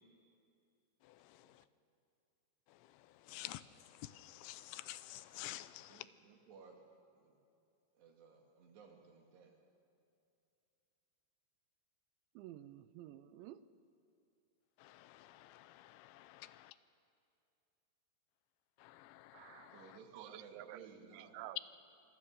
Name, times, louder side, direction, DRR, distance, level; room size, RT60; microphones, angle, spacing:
voice 1, 3.3-3.6 4.0-6.1 14.8-16.7 18.8-20.0, left 16 dB, 90° left, 14 dB, 3.1 m, -50 dB
voice 2, 5.8-6.8 7.2-7.4 8.0-9.5 19.7-21.5, right 5 dB, 70° right, 2 dB, 4.2 m, -59 dB
voice 3, 12.4-13.6 19.3-19.8 20.1-20.9 21.1-21.6, right 14 dB, 85° right, 14 dB, 3.0 m, -51 dB
26.0 x 21.5 x 6.6 m, 2.6 s
omnidirectional pair, 5.2 m